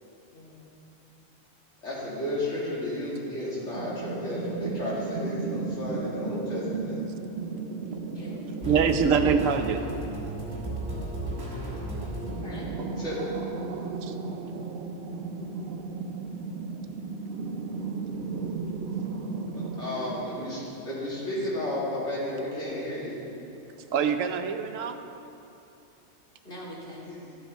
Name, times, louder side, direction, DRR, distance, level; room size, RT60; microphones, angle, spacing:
voice 1, 0.3-0.7 8.1-8.4 12.4-12.7 19.8-20.1 26.4-27.1, left 1 dB, 45° left, -6 dB, 2.7 m, -43 dB
voice 2, 1.8-7.0 13.0-13.1 19.8-23.2 27.1-27.4, left 1 dB, 65° left, -7 dB, 3.0 m, -32 dB
sound 1, 3.7-20.6, right 4 dB, 60° right, 0.9 m, -35 dB
sound 2, 8.6-12.8, right 1 dB, 35° right, 2.4 m, -34 dB
voice 3, 8.7-9.8 14.0-14.2 23.9-25.0, right 6 dB, 80° right, 7 dB, 1.1 m, -24 dB
13.0 x 9.3 x 4.2 m, 2.8 s
omnidirectional pair, 1.3 m